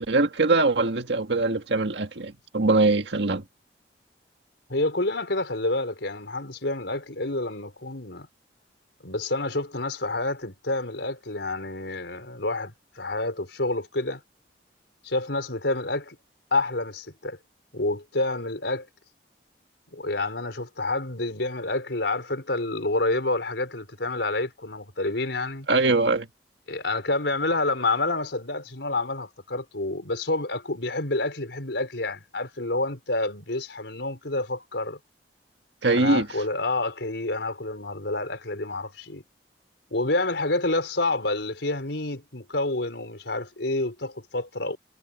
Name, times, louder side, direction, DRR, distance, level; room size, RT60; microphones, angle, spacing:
voice 1, 0.0-3.4 25.7-26.3 35.8-36.3, right 3 dB, 80° right, 1.8 m, -22 dB
voice 2, 4.7-8.3 9.0-14.2 15.0-16.2 16.5-17.4 17.7-18.9 19.9-25.7 26.7-35.0 35.9-39.2 39.9-44.8, left 2 dB, 85° left, 4.5 m, -28 dB
head